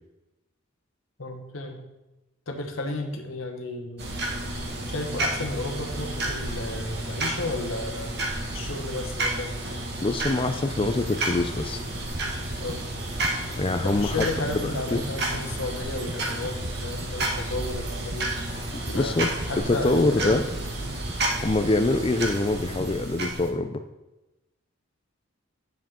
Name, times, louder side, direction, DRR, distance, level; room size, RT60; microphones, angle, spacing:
voice 1, 1.2-1.8 2.5-4.1 4.9-8.2 8.5-9.6 12.6-12.9 13.8-18.4 18.9-20.4 20.8-21.0, left 2 dB, 75° left, 4 dB, 1.4 m, -33 dB
sound 1, 4.0-23.5, right 1 dB, 55° right, 1.8 m, -31 dB
voice 2, 10.0-11.8 13.6-14.3 14.9-15.0 18.7-19.3 19.7-20.4 21.4-23.8, left 2 dB, 25° left, 8 dB, 0.4 m, -24 dB
sound 2, 10.7-23.0, right 1 dB, 30° right, 0.8 m, -40 dB
10.5 x 7.2 x 3.7 m, 1.0 s
head